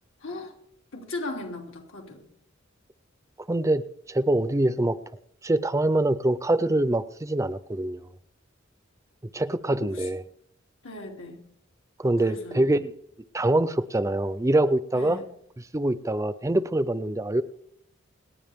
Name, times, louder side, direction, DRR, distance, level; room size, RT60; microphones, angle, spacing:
voice 1, 0.2-0.5 0.9-2.3 9.8-10.1 10.8-11.4 12.0-12.7 14.9-15.3, left 2 dB, 85° left, 3.1 m, -37 dB
voice 2, 3.5-3.8 4.1-5.0 5.4-8.1 9.3-10.2 12.0-12.9 13.3-15.2 15.7-17.4, right 1 dB, 15° right, 0.5 m, -24 dB
28.5 x 9.7 x 3.6 m
head